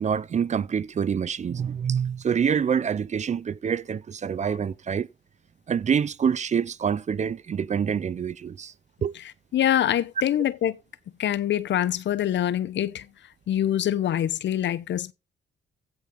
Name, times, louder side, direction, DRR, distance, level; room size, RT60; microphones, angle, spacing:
voice 1, 0.0-5.1 5.7-8.7 9.0-9.1, right 7 dB, 35° right, 0.5 m, -26 dB
voice 2, 9.5-10.8 11.2-13.1 13.5-15.1, left 11 dB, 65° left, 0.9 m, -24 dB
16.0 x 5.9 x 3.9 m
cardioid pair, 90°, 20 cm